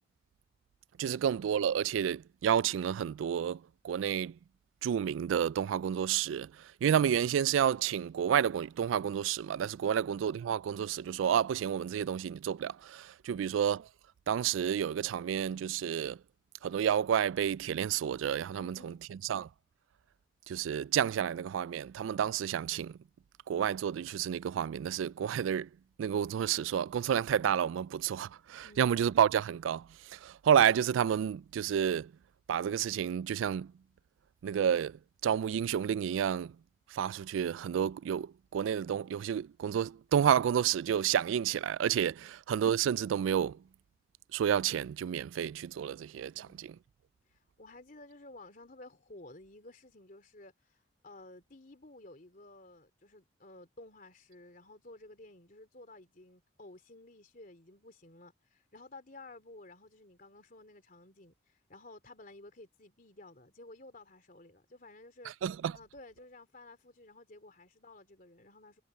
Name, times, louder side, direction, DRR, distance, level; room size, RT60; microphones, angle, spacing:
voice 1, 1.0-3.6 3.8-4.3 4.8-6.5 6.8-13.8 14.3-16.2 16.6-18.9 19.3-19.4 20.5-23.0 23.5-25.7 26.0-29.8 30.1-32.1 32.5-33.7 34.4-36.5 36.9-42.2 42.5-43.6 44.3-46.7 65.4-65.7, right 8 dB, 90° right, 0.3 m, -30 dB
voice 2, 13.2-13.6 18.5-19.0 28.6-29.0 42.2-42.4 46.3-46.6 47.3-65.3 65.7-68.8, left 2 dB, 45° left, 3.1 m, -54 dB
head